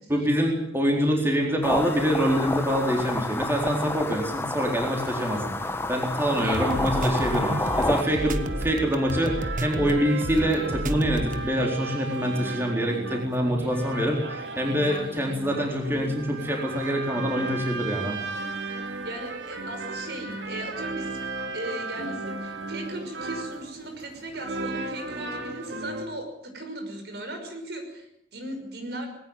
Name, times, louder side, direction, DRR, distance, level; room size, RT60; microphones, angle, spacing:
voice 1, 0.1-18.1, equal, 15° right, 0 dB, 4.1 m, -25 dB
sound 1, 1.6-8.0, left 2 dB, 15° left, 1.2 m, -29 dB
sound 2, 6.3-26.1, right 3 dB, 85° right, 3.0 m, -35 dB
sound 3, 6.4-11.5, right 1 dB, 45° right, 1.4 m, -31 dB
voice 2, 6.4-6.9 18.8-21.2 21.5-29.1, right 1 dB, 65° right, 5 dB, 5.9 m, -37 dB
20.5 x 18.5 x 9.2 m, 0.76 s
head